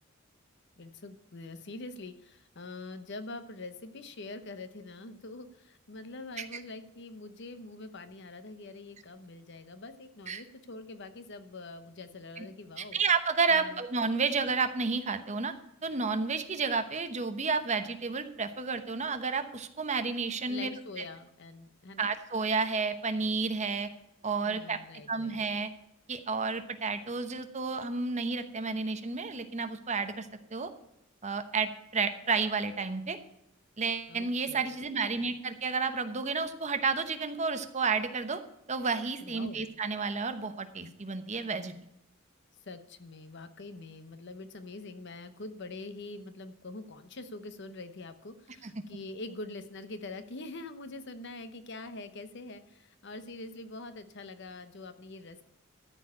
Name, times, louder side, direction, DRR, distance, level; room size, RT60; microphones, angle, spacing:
voice 1, 0.8-13.0 13.5-13.8 20.5-22.1 24.4-25.4 34.1-34.7 39.2-39.7 42.6-55.4, left 2 dB, 60° left, 10 dB, 0.9 m, -44 dB
voice 2, 12.8-15.5 15.8-20.7 22.0-23.9 24.2-24.8 25.1-25.7 26.1-30.7 31.2-33.2 33.8-38.4 38.7-41.7 48.6-48.7, right 4 dB, 35° right, 9 dB, 0.9 m, -31 dB
13.5 x 4.5 x 8.4 m, 0.82 s
head